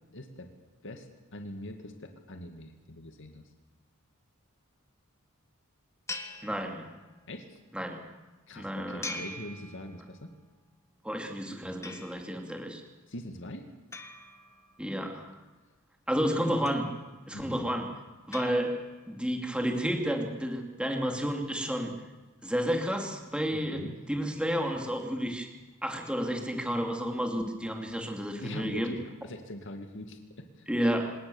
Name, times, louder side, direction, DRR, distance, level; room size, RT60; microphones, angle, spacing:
voice 1, 0.1-0.5 0.8-3.5 7.3-7.6 8.5-10.3 13.1-13.7 16.1-16.3 17.3-17.7 23.5-24.0 28.4-30.7, left 1 dB, 60° left, 5 dB, 2.2 m, -43 dB
sound 1, 6.1-7.3 9.0-10.3 11.8-12.5 13.9-15.1 16.7-17.4 18.3-19.2, left 2 dB, 15° left, 1.8 m, -44 dB
voice 2, 6.4-6.8 7.7-8.0 8.6-9.2 11.0-12.8 14.8-15.3 16.1-16.9 17.3-17.9 18.3-18.8 19.1-21.9 22.4-23.8 24.1-25.5 25.8-28.9 30.7-31.1, equal, 5° right, 3 dB, 2.9 m, -31 dB
27.0 x 18.5 x 7.2 m, 1.2 s
head